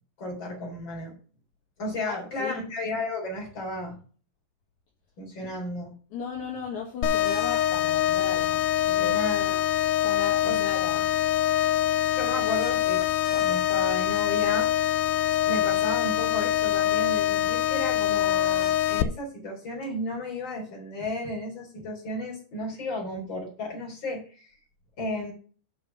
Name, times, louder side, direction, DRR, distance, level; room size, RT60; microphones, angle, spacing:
voice 1, 0.2-1.2 1.8-4.0 5.2-6.0 8.9-9.7 10.4-10.6 10.9-11.0 12.1-13.0 13.3-14.7 15.5-24.5 25.0-25.3, left 1 dB, 35° left, -1 dB, 4.2 m, -34 dB
voice 2, 2.0-2.6 5.4-5.5 6.1-8.6 8.9-9.2 10.0-11.1, left 6 dB, 60° left, -2 dB, 3.0 m, -36 dB
sound 1, 7.0-19.0, left 11 dB, 80° left, 2.4 m, -24 dB
7.9 x 5.6 x 6.9 m, 0.40 s
omnidirectional pair, 4.1 m